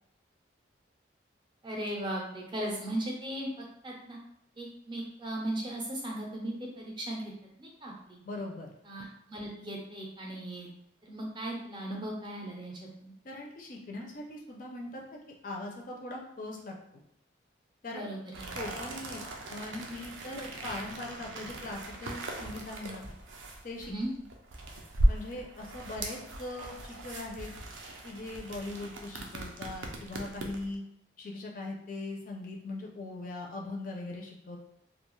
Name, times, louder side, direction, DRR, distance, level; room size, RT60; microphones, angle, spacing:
voice 1, 1.6-4.2 4.6-7.2 7.6-8.2 8.8-10.7 11.0-13.1 17.9-18.5 23.8-24.1, right 1 dB, 25° right, -1 dB, 0.5 m, -37 dB
voice 2, 8.2-8.7 13.2-17.0 17.8-18.1 18.5-19.2 19.5-23.1 23.6-23.9 25.1-27.5 28.0-30.8 31.2-34.6, left 2 dB, 45° left, 0 dB, 0.4 m, -40 dB
sound 1, 18.3-30.7, right 1 dB, 85° right, 0.4 m, -36 dB
2.3 x 2.2 x 3.0 m, 0.73 s
head